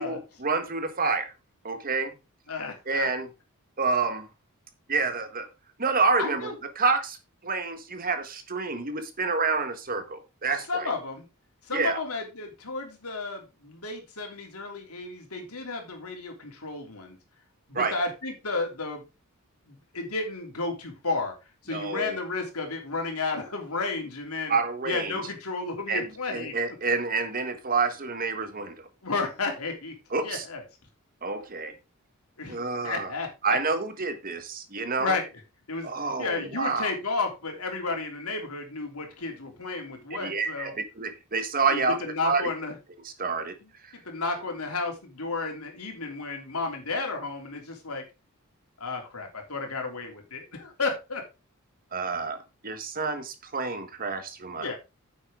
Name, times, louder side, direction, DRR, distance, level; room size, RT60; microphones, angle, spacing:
voice 1, 0.0-1.3 1.6-2.1 2.9-3.3 3.8-4.3 4.9-5.5 5.8-7.2 7.4-10.9 11.7-12.0 17.7-17.9 21.7-22.2 24.5-25.2 25.9-28.9 30.1-30.4 31.2-31.7 32.5-33.1 33.4-35.2 35.8-36.9 40.1-42.0 42.2-42.5 43.2-43.6 51.9-52.4 52.6-54.7, right 4 dB, 40° right, 9 dB, 1.4 m, -28 dB
voice 2, 2.5-3.1 6.2-6.5 10.7-11.3 11.7-17.2 17.7-19.0 19.7-21.3 21.6-24.6 24.8-26.5 29.0-29.9 30.2-30.6 32.4-33.3 35.0-35.3 35.7-35.9 36.2-40.7 41.7-42.8 43.6-43.7 44.0-48.0 48.8-51.2 54.6-54.7, left 3 dB, 80° left, 3 dB, 3.2 m, -32 dB
9.7 x 7.3 x 3.8 m, 0.27 s
head